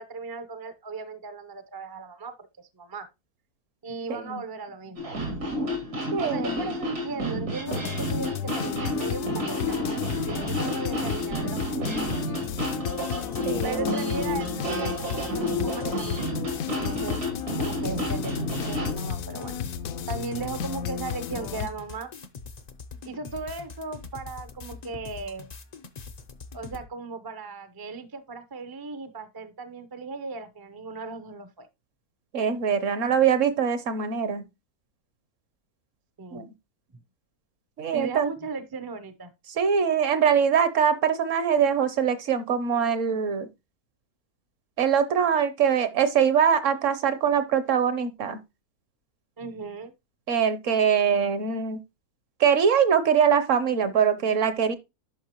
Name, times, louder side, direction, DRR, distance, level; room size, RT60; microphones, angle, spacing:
voice 1, 0.0-3.1 3.8-5.2 6.2-12.4 13.6-16.2 16.6-17.2 17.6-19.6 20.1-22.1 23.0-25.5 26.5-31.7 33.0-33.1 36.2-36.4 37.9-39.3 49.4-49.9, right 4 dB, 30° right, 0.4 m, -37 dB
voice 2, 4.1-4.4 6.1-6.5 13.4-14.0 32.3-34.4 36.3-36.5 37.8-38.3 39.6-43.5 44.8-48.4 50.3-51.8 52.4-54.8, right 7 dB, 60° right, 1.1 m, -23 dB
sound 1, 5.0-18.9, equal, 85° right, 3.2 m, -30 dB
sound 2, 7.7-21.7, left 9 dB, 70° left, 1.0 m, -33 dB
sound 3, 12.4-26.9, left 4 dB, 55° left, 0.4 m, -43 dB
11.0 x 5.4 x 3.0 m
omnidirectional pair, 1.6 m